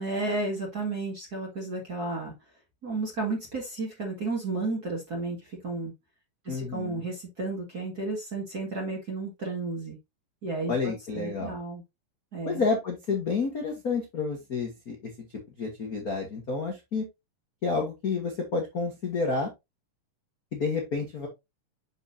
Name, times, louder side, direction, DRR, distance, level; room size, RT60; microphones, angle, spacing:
voice 1, 0.0-2.3 2.8-5.4 5.6-5.9 6.4-10.0 10.4-11.8 12.3-12.6, right 3 dB, 35° right, 2.1 m, -32 dB
voice 2, 6.5-7.0 10.7-11.6 12.4-15.1 15.6-17.0 17.6-19.5 20.5-21.3, left 4 dB, 55° left, 1.0 m, -30 dB
7.0 x 6.0 x 2.7 m
omnidirectional pair, 3.9 m